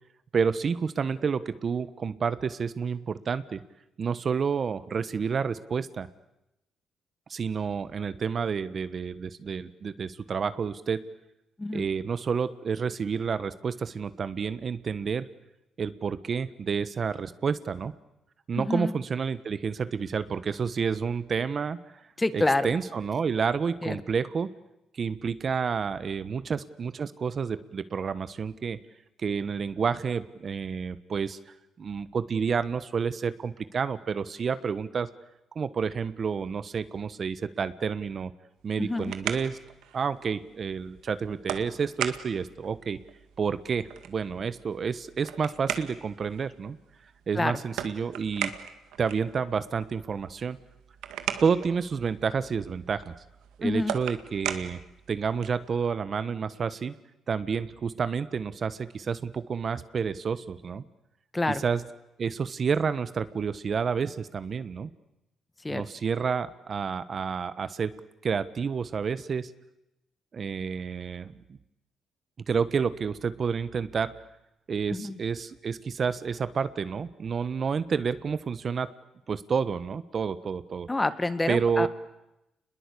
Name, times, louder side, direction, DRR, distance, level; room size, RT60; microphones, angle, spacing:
voice 1, 0.3-3.6 4.0-6.1 7.3-11.0 11.7-15.3 15.8-17.9 18.5-21.8 22.3-24.5 24.9-28.8 29.2-31.4 31.8-35.1 35.5-38.3 38.6-39.6 39.9-43.0 43.4-46.8 47.3-48.5 49.0-50.6 51.4-53.1 53.6-54.8 55.1-56.9 57.3-60.8 61.5-61.8 62.2-64.9 65.7-67.9 68.2-69.5 70.3-71.6 72.5-74.1 74.7-78.9 79.3-80.9 81.5-81.9, right 6 dB, 45° right, 14 dB, 1.2 m, -29 dB
voice 2, 18.5-18.9 22.2-22.7 23.8-24.0 38.8-39.1 47.4-47.6 53.6-53.9 61.3-61.6 65.6-65.8 74.9-75.2 80.9-81.9, left 2 dB, 15° left, 13 dB, 1.7 m, -27 dB
sound 1, 38.6-55.7, right 10 dB, 90° right, 2.0 m, -39 dB
29.0 x 21.5 x 8.5 m, 0.89 s
cardioid pair, 90°, 0 cm